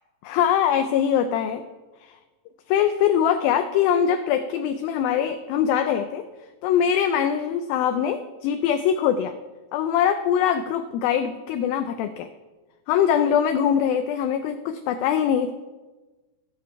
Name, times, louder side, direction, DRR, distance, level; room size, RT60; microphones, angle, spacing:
voice 1, 0.2-1.6 2.0-2.2 2.7-6.2 6.6-9.3 9.7-12.3 12.9-15.5, left 9 dB, 80° left, 8 dB, 2.2 m, -22 dB
15.5 x 6.9 x 4.5 m, 1.2 s
omnidirectional pair, 4.6 m